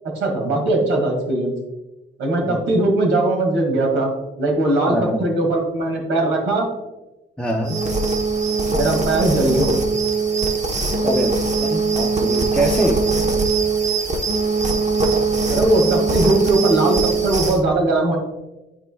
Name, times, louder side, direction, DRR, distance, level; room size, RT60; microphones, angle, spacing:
voice 1, 0.1-1.5 2.2-4.1 4.4-6.7 8.7-9.7 15.5-17.0 17.2-18.2, right 2 dB, 85° right, 1 dB, 2.2 m, -19 dB
voice 2, 4.9-5.2 7.4-7.8 11.0-13.1, right 1 dB, 5° left, -1 dB, 0.7 m, -23 dB
sound 1, 7.6-17.6, right 4 dB, 35° right, 1.1 m, -21 dB
12.5 x 4.3 x 2.4 m, 1.0 s
cardioid pair, 90°, 20 cm